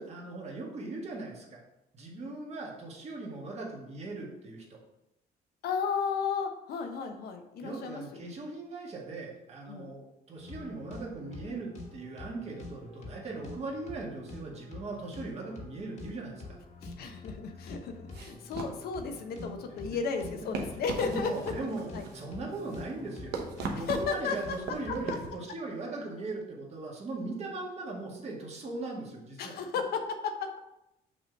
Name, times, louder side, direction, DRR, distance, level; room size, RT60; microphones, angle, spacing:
voice 1, 0.0-1.6 1.9-4.6 7.6-16.6 20.4-20.5 21.0-23.3 23.7-29.5, right 3 dB, 40° right, -2 dB, 1.7 m, -39 dB
voice 2, 5.6-8.3 9.7-9.9 16.8-21.5 21.9-22.1 23.8-24.4 24.9-25.2 29.4-30.6, left 5 dB, 65° left, 6 dB, 0.8 m, -34 dB
sound 1, 10.4-25.3, left 2 dB, 45° left, 1.3 m, -46 dB
sound 2, 18.1-25.3, right 4 dB, 75° right, 0.9 m, -40 dB
6.1 x 3.1 x 5.1 m, 0.88 s
cardioid pair, 110°, 17 cm